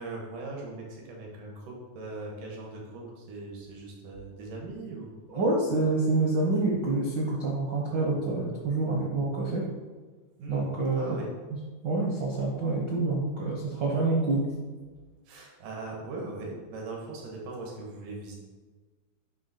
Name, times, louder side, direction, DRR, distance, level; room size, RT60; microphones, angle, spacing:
voice 1, 0.0-5.1 10.4-10.7 11.0-11.3 15.3-18.4, right 3 dB, 90° right, -1 dB, 2.9 m, -40 dB
voice 2, 5.3-9.6 10.5-11.2 11.8-14.5, right 3 dB, 65° right, -3 dB, 1.1 m, -27 dB
9.6 x 3.5 x 5.7 m, 1.4 s
omnidirectional pair, 3.6 m